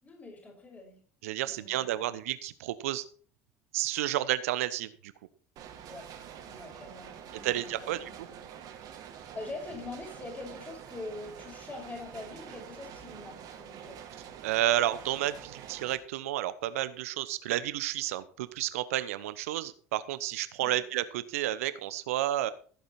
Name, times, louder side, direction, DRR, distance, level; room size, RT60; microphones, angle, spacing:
voice 1, 0.0-1.0 1.4-2.1 5.9-6.1 6.4-8.6 8.9-14.0 20.6-20.9, left 2 dB, 20° left, 1 dB, 6.2 m, -44 dB
voice 2, 1.2-3.0 3.7-5.1 7.4-8.3 14.4-22.5, right 14 dB, 70° right, 15 dB, 1.0 m, -31 dB
sound 1, 5.6-16.0, right 9 dB, 50° right, 2.3 m, -47 dB
15.5 x 8.3 x 4.4 m, 0.44 s
hypercardioid pair, 70°, 8 cm